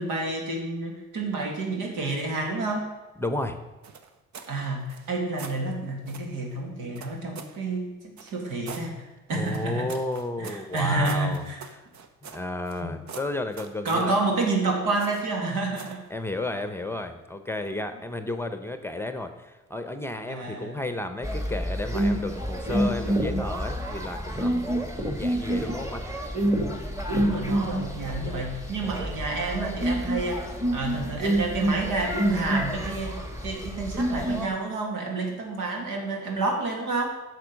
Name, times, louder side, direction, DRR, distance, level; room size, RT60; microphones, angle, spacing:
voice 1, 0.0-2.9 4.5-9.0 9.3-9.9 10.4-11.6 12.8-12.9 13.8-16.0 20.3-20.8 27.1-37.2, right 3 dB, 85° right, 1 dB, 2.3 m, -29 dB
voice 2, 3.2-3.6 9.3-11.5 11.8-11.9 12.2-14.1 16.1-24.7 25.0-26.0, left 2 dB, 10° left, 8 dB, 0.8 m, -32 dB
sound 1, 3.8-4.5 4.9-5.6 6.1-6.3 7.0-7.6 8.2-8.9 9.4-12.8 13.1-14.1 15.0-15.4 15.8-16.0, right 6 dB, 70° right, 1.0 m, -43 dB
sound 2, 21.2-34.5, right 1 dB, 10° right, 1.6 m, -28 dB
10.5 x 6.5 x 5.2 m, 1.1 s
cardioid pair, 90°, 30 cm